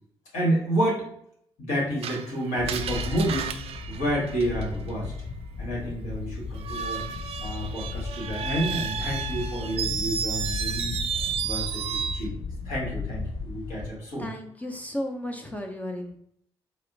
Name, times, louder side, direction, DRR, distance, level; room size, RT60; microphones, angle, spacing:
voice 1, 0.3-1.0 1.6-3.5 3.9-5.1 5.6-7.0 7.4-10.9 11.4-12.3 12.6-14.3, right 1 dB, 65° left, -5 dB, 1.4 m, -29 dB
Screech, 2.0-4.9 6.6-12.3, right 7 dB, 50° right, 0.3 m, -32 dB
Wind, 2.6-13.9, left 4 dB, 45° left, 0.7 m, -35 dB
voice 2, 14.2-16.2, left 1 dB, 10° left, 3 dB, 0.5 m, -34 dB
4.2 x 2.1 x 2.6 m, 0.68 s
figure-of-eight pair, 40°, 13 cm